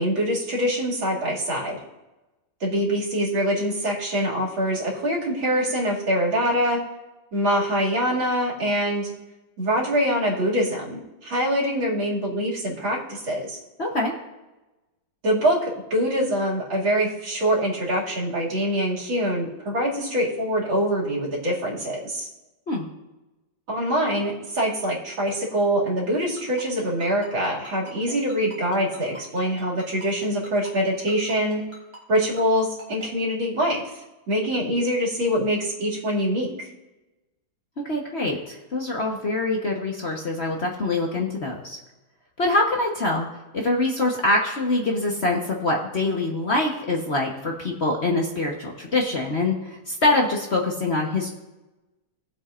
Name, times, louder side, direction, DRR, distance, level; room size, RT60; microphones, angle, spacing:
voice 1, 0.0-1.8 2.6-6.8 7.3-9.1 9.6-13.6 15.2-22.3 23.7-31.6 32.1-34.0 34.3-36.7, equal, 75° right, -3 dB, 3.3 m, -24 dB
voice 2, 13.8-14.1 22.7-22.8 37.9-41.8 42.4-43.3 43.5-51.3, left 2 dB, 40° left, 0 dB, 1.2 m, -24 dB
Ringtone, 26.4-33.1, right 1 dB, 35° right, 4.0 m, -42 dB
19.0 x 7.7 x 2.5 m, 1.0 s
omnidirectional pair, 2.2 m